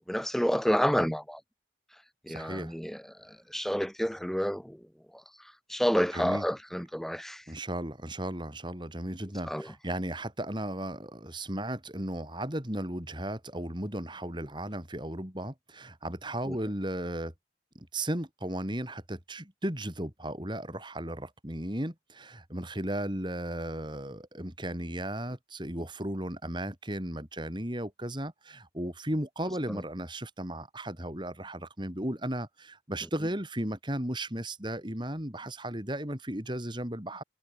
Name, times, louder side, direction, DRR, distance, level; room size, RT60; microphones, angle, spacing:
voice 1, 0.1-1.4 2.3-4.8 5.7-7.4 9.4-9.7 16.5-16.6 29.7-29.8, equal, ahead, 1.4 m, -29 dB
voice 2, 2.3-2.7 6.1-6.4 7.5-17.3 17.7-37.2, right 1 dB, 25° right, 4.4 m, -35 dB
head